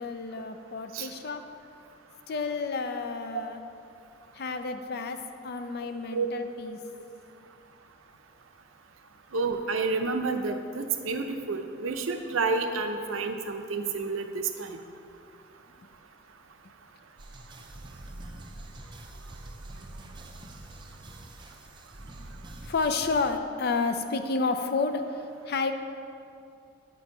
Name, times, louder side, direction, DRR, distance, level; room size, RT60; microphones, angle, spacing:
voice 1, 0.0-1.4 2.3-3.6 4.3-5.2 5.4-6.8 22.2-22.3 22.6-25.0 25.5-25.7, left 4 dB, 50° left, 8 dB, 0.4 m, -30 dB
voice 2, 9.3-14.8, right 4 dB, 75° right, 6 dB, 0.6 m, -29 dB
sound 1, 17.2-23.3, right 1 dB, 20° right, 0.4 m, -45 dB
8.2 x 4.5 x 5.2 m, 2.5 s
head